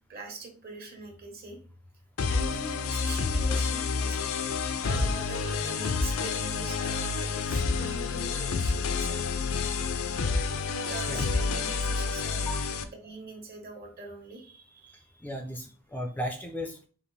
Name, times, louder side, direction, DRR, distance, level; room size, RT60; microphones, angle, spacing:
voice 1, 0.1-1.6 2.3-4.3 4.8-9.3 10.8-12.5 12.8-15.4, right 3 dB, 45° right, 2 dB, 1.4 m, -43 dB
sound 1, 2.2-12.8, left 4 dB, 85° left, 0.5 m, -29 dB
voice 2, 15.2-16.9, equal, 10° left, 4 dB, 0.4 m, -35 dB
5.3 x 2.5 x 4.0 m, 0.41 s
head